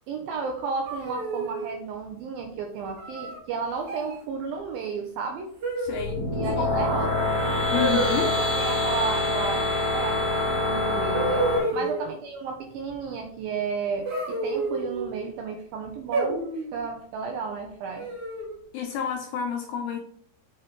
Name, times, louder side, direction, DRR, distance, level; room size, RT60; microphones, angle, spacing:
voice 1, 0.1-5.5 6.3-7.4 8.2-18.1, right 5 dB, 85° right, 3 dB, 2.1 m, -33 dB
sound 1, 0.9-1.7 3.0-3.4 3.8-4.2 5.6-6.3 7.7-8.3 10.3-10.4 11.1-12.1 14.1-15.1 16.1-16.8 18.0-18.6, right 2 dB, 50° right, 2.7 m, -29 dB
voice 2, 5.8-6.2 6.6-6.8 7.7-8.3 11.6-11.9 18.7-20.0, left 8 dB, 80° left, 3 dB, 2.3 m, -30 dB
sound 2, 5.9-11.6, left 2 dB, 25° right, 3.2 m, -25 dB
7.7 x 4.7 x 4.5 m, 0.62 s
omnidirectional pair, 5.1 m